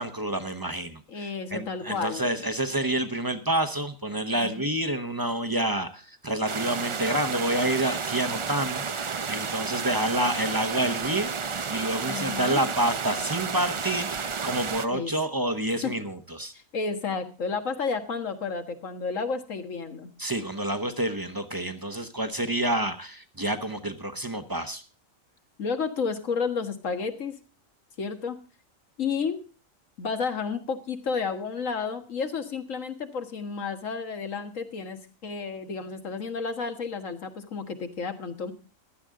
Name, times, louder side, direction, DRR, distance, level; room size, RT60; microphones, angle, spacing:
voice 1, 0.0-16.5 20.2-24.8, right 1 dB, 20° right, 9 dB, 0.9 m, -28 dB
voice 2, 1.1-2.3 4.3-4.7 12.1-12.6 14.9-15.1 15.8-15.9 16.5-20.1 25.6-27.4 28.0-28.4 29.0-29.4 30.0-38.5, left 5 dB, 75° left, 8 dB, 1.9 m, -31 dB
sound 1, 6.5-14.9, right 5 dB, 40° right, 0.4 m, -31 dB
15.5 x 12.0 x 3.7 m, 0.34 s
omnidirectional pair, 1.4 m